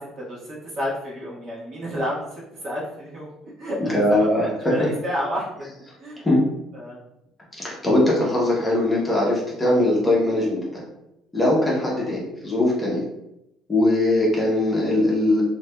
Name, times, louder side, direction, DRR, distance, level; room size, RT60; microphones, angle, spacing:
voice 1, 0.0-4.4 4.7-5.5 6.0-6.2 6.7-7.0 11.8-12.1, equal, 45° right, -5 dB, 1.1 m, -31 dB
voice 2, 3.9-4.7 6.2-6.4 7.6-10.8 11.3-13.0 13.7-15.4, left 1 dB, 15° left, -4 dB, 0.8 m, -21 dB
3.2 x 2.7 x 2.2 m, 0.86 s
cardioid pair, 135°, 0 cm